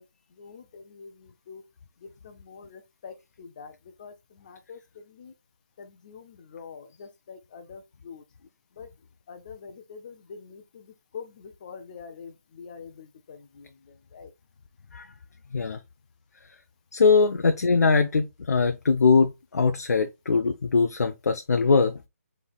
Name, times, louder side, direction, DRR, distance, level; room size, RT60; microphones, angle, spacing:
voice 1, 0.4-1.1 1.5-1.6 2.5-2.7 3.0-3.1 3.4-3.7 4.0-4.1 4.5-4.8 5.2-5.3 6.1-6.2 6.5-6.8 7.3-7.8 8.1-8.2 8.8-8.9 9.3-10.1 10.5-10.6 11.1-11.2 11.6-12.3 12.6-12.9 14.1-14.3, left 6 dB, 30° left, 0.5 m, -42 dB
voice 2, 16.9-22.0, left 4 dB, 90° left, 0.5 m, -21 dB
5.4 x 3.2 x 2.3 m
hypercardioid pair, 170°, 8 cm